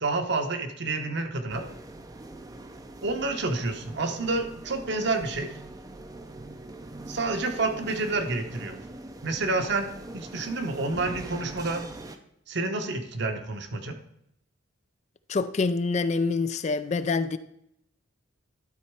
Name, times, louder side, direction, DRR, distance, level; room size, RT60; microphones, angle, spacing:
voice 1, 0.0-1.7 3.0-5.5 7.1-8.8 9.2-11.8 12.5-14.0, right 3 dB, 55° right, 1.0 m, -29 dB
sound 1, 1.5-12.2, right 2 dB, 20° right, 0.5 m, -42 dB
voice 2, 15.3-17.4, left 4 dB, 35° left, 0.4 m, -26 dB
12.0 x 4.2 x 4.7 m
head